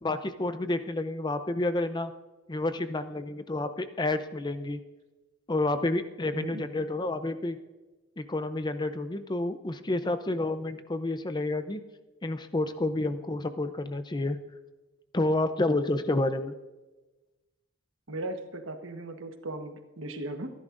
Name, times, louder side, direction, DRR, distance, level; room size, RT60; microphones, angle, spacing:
voice 1, 0.0-2.1 2.5-4.8 5.5-7.6 8.2-11.8 12.2-14.4 15.1-16.5, left 2 dB, 20° left, 10 dB, 0.6 m, -29 dB
voice 2, 6.3-6.7 18.1-20.5, right 2 dB, 85° right, 6 dB, 1.3 m, -37 dB
26.0 x 11.0 x 2.6 m, 1.1 s
head